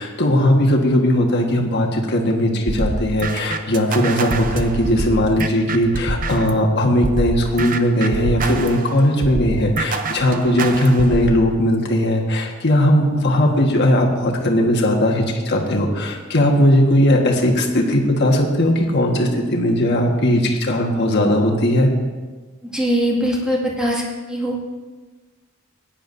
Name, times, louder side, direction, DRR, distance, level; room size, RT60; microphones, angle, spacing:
voice 1, 0.0-21.9, left 1 dB, 50° left, 1 dB, 1.4 m, -18 dB
sound 1, 2.7-6.6 7.0-11.4, right 2 dB, 40° right, 0.6 m, -26 dB
voice 2, 22.7-24.6, equal, 5° right, -4 dB, 2.0 m, -21 dB
16.5 x 10.0 x 2.6 m, 1.3 s
head